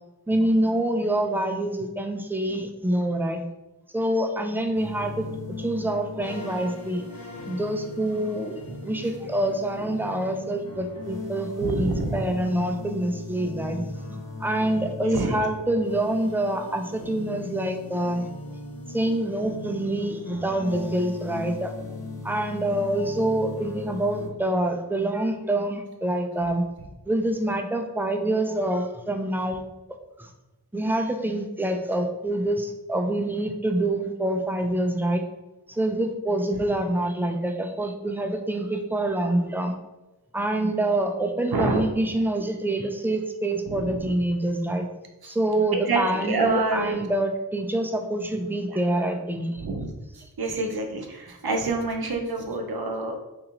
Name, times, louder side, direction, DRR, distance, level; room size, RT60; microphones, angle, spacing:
voice 1, 0.3-3.4 3.9-7.0 7.5-18.3 18.9-21.7 22.2-26.7 27.1-29.6 30.2-30.3 30.7-35.2 35.7-39.7 40.3-44.9 45.3-49.7, right 1 dB, 5° right, 4 dB, 0.3 m, -26 dB
sound 1, 4.7-24.3, left 3 dB, 55° left, 0.9 m, -38 dB
voice 2, 11.6-12.2 15.0-15.4 41.5-41.8 43.7-43.9 45.2-45.4 45.9-47.0 48.7-48.8 49.6-49.9 50.4-53.2, right 2 dB, 60° right, 3 dB, 0.6 m, -27 dB
2.9 x 2.9 x 3.7 m, 1.0 s
wide cardioid pair, 55°, 42 cm